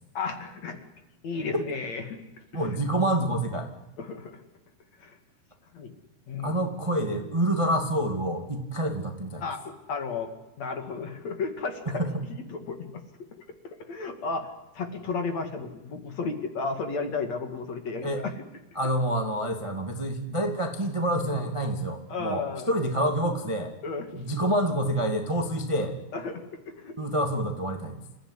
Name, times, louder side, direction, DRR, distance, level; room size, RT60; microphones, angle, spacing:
voice 1, 0.1-0.8 1.2-2.2 4.0-4.4 5.0-5.2 5.7-5.9 6.3-6.5 9.4-10.3 10.6-12.0 12.5-13.0 13.6-14.5 14.7-18.3 22.1-22.7 23.8-24.2 26.1-26.9, left 4 dB, 50° left, 6 dB, 3.1 m, -33 dB
voice 2, 2.5-3.7 6.4-9.4 12.0-12.2 18.0-18.2 18.7-23.7 24.1-26.0 27.0-28.0, right 1 dB, 10° right, 4 dB, 1.4 m, -27 dB
28.5 x 15.5 x 9.9 m, 0.97 s
omnidirectional pair, 4.6 m